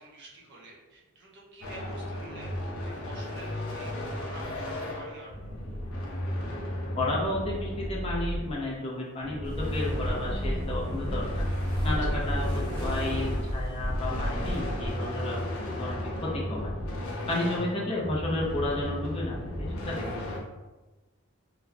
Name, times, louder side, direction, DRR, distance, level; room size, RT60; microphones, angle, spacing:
voice 1, 0.0-5.4 11.8-12.3, right 2 dB, 50° right, -3 dB, 0.7 m, -48 dB
sound 1, 1.6-8.8 9.2-20.4, left 1 dB, 70° left, 0.7 m, -34 dB
voice 2, 7.0-11.4 11.8-16.7 17.3-20.0, left 1 dB, 25° left, -5 dB, 0.6 m, -32 dB
sound 2, 9.4-14.9, equal, 85° right, 0.8 m, -32 dB
4.0 x 2.2 x 2.8 m, 1.2 s
head